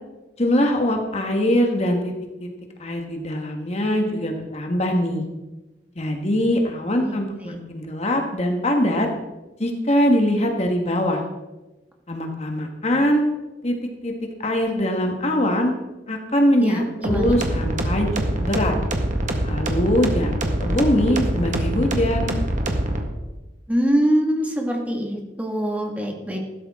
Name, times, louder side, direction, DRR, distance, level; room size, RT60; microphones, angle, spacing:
voice 1, 0.4-2.1 2.4-2.5 2.8-5.2 6.0-9.1 9.6-11.2 12.1-13.2 13.6-13.7 14.0-14.1 14.4-15.7 16.1-18.7 19.4-22.3, equal, 35° left, 3 dB, 1.5 m, -22 dB
voice 2, 16.6-17.4 23.7-26.4, equal, 10° right, 1 dB, 1.9 m, -23 dB
sound 1, 17.0-23.0, right 1 dB, 45° right, 1.6 m, -24 dB
15.5 x 13.0 x 3.7 m, 1.1 s
head